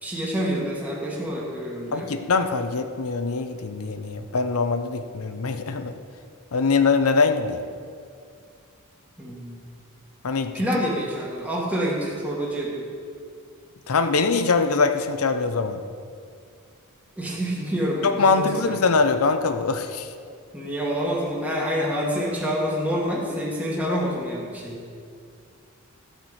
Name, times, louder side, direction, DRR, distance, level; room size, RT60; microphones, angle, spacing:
voice 1, 0.0-2.1 9.2-9.6 10.5-12.9 17.2-18.8 20.5-24.8, equal, 5° right, -4 dB, 1.4 m, -27 dB
voice 2, 1.9-5.9 6.5-7.7 10.2-10.5 13.9-15.8 18.0-20.1, left 4 dB, 80° left, 8 dB, 0.7 m, -23 dB
12.5 x 4.5 x 8.0 m, 2.2 s
head